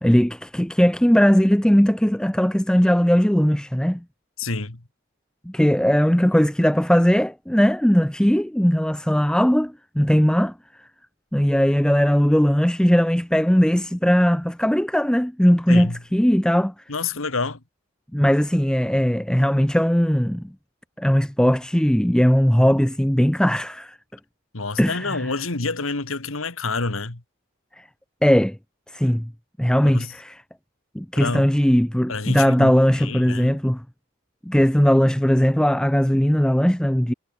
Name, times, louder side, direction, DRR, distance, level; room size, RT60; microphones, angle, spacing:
voice 1, 0.0-4.0 5.5-10.5 11.3-16.7 18.1-20.5 21.0-24.0 24.8-25.2 27.8-27.9 28.2-28.6 28.9-29.3 29.6-30.4 30.9-33.8 34.5-37.1, equal, 5° left, 0.6 m, -19 dB
voice 2, 4.4-4.8 15.7-16.0 16.9-17.6 24.5-27.2 29.8-30.1 31.2-31.5 32.1-33.6, left 3 dB, 80° left, 1.9 m, -28 dB
head